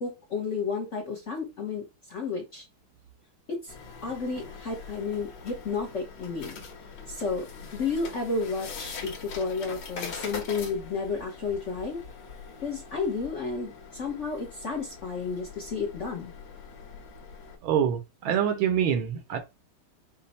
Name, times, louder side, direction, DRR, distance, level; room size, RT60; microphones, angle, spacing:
voice 1, 0.0-2.6 3.5-3.8 4.0-6.5 7.1-7.5 7.7-12.0 12.6-16.3, left 4 dB, 45° left, 1.0 m, -32 dB
sound 1, 3.7-17.6, left 5 dB, 70° left, 1.9 m, -43 dB
voice 2, 17.6-19.4, right 8 dB, 70° right, 1.4 m, -25 dB
5.4 x 2.2 x 4.0 m
omnidirectional pair, 2.4 m